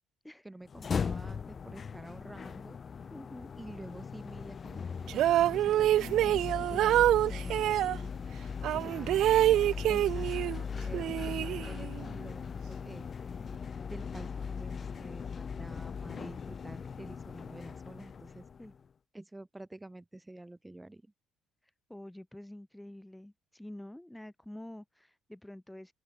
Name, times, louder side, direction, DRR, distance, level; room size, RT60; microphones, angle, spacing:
voice 1, 0.4-3.1 3.6-5.9 6.2-8.4 8.7-9.3 9.8-13.4 13.9-18.4 19.1-21.1, right 2 dB, 10° right, 6.3 m, -48 dB
sound 1, 0.6-18.8, left 6 dB, 40° left, 0.5 m, -39 dB
voice 2, 3.1-3.5 8.8-9.1 18.6-18.7 21.6-25.9, left 1 dB, 5° left, 4.6 m, -48 dB
sound 2, 5.1-8.0 8.6-10.6 10.9-12.0, right 13 dB, 60° right, 0.8 m, -26 dB
open air
hypercardioid pair, 50°, 0 cm